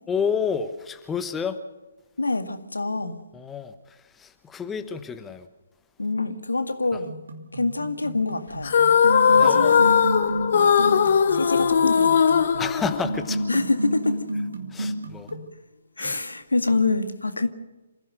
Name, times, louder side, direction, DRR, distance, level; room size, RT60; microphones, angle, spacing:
voice 1, 0.1-1.6 3.3-5.5 9.3-9.8 12.6-13.4 14.7-15.3 16.0-16.2, left 6 dB, 10° left, 1.1 m, -30 dB
voice 2, 2.2-3.2 6.0-7.1 7.5-8.8 9.4-9.8 11.3-12.4 13.5-14.2 15.3-15.4 16.0-17.5, left 3 dB, 75° left, 1.9 m, -26 dB
sound 1, 7.0-15.5, right 1 dB, 65° right, 2.6 m, -32 dB
sound 2, 8.6-13.5, left 7 dB, 50° left, 1.3 m, -19 dB
28.0 x 15.5 x 6.6 m
figure-of-eight pair, 135°, 0 cm